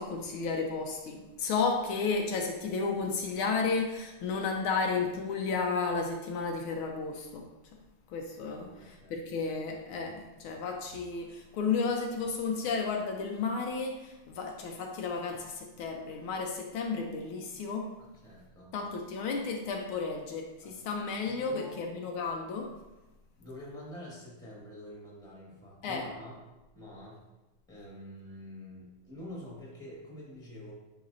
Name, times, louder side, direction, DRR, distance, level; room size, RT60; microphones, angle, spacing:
voice 1, 0.0-7.5 8.1-17.9 18.7-22.7 25.8-26.0, left 4 dB, 75° left, 2 dB, 1.4 m, -33 dB
voice 2, 8.5-9.1 9.4-9.5 18.0-18.7 20.6-20.8 21.3-21.9 23.4-26.4 26.7-27.2 27.7-30.7, left 1 dB, ahead, -4 dB, 1.4 m, -46 dB
9.3 x 4.0 x 2.6 m, 1.0 s
omnidirectional pair, 2.4 m